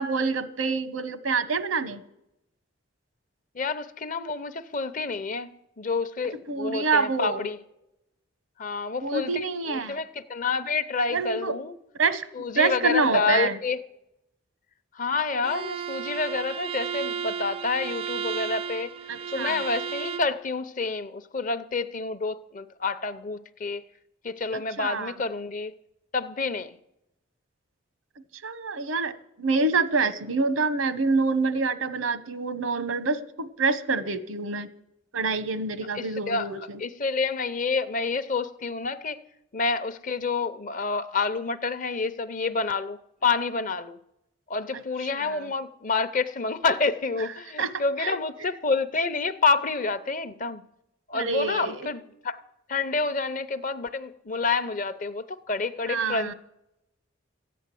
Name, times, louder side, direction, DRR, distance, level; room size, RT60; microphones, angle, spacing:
voice 1, 0.0-2.0 6.5-7.4 9.0-10.0 11.1-11.5 12.0-12.3 12.6-13.6 19.1-19.6 24.8-25.1 28.4-34.7 35.1-36.8 45.1-45.4 47.6-47.7 48.0-48.2 51.1-51.9 55.9-56.3, right 4 dB, 90° right, 1.0 m, -26 dB
voice 2, 3.5-7.6 8.6-11.8 12.3-13.8 14.9-18.9 19.3-23.9 24.2-25.7 26.1-26.8 35.9-36.5 36.8-39.2 39.5-44.0 44.5-50.6 51.1-52.4 52.7-56.3, left 4 dB, 40° left, 0.6 m, -28 dB
Bowed string instrument, 15.4-20.4, right 7 dB, 30° right, 0.4 m, -33 dB
14.0 x 9.2 x 7.6 m
head